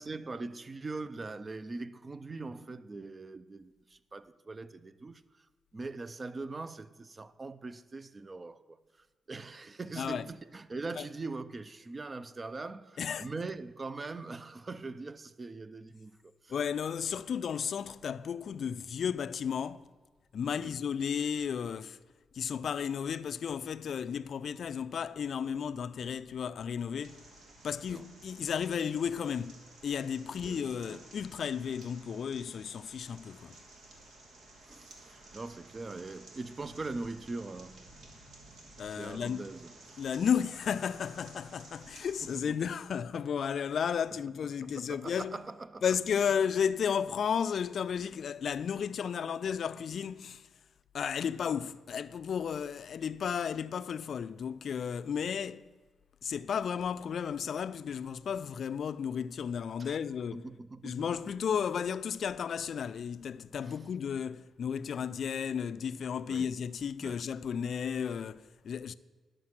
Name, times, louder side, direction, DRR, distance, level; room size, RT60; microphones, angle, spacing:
voice 1, 0.0-5.5 5.7-8.8 9.3-16.5 20.6-20.7 27.9-28.1 30.4-31.0 34.6-37.9 38.9-40.0 42.3-42.6 44.7-45.8 59.8-60.0 60.3-61.1 63.7-63.9 66.3-66.5 67.0-67.2, right 3 dB, 35° right, 0.5 m, -42 dB
voice 2, 10.0-10.3 11.0-11.1 13.0-13.3 16.5-19.8 20.3-22.0 22.3-27.2 27.6-33.6 38.8-39.5 40.0-45.4 45.8-50.5 50.9-55.7 56.2-60.4 60.8-68.9, left 7 dB, 65° left, 0.3 m, -33 dB
sound 1, 27.0-42.3, right 2 dB, 80° right, 1.7 m, -54 dB
11.0 x 6.5 x 5.9 m
cardioid pair, 75°, 0 cm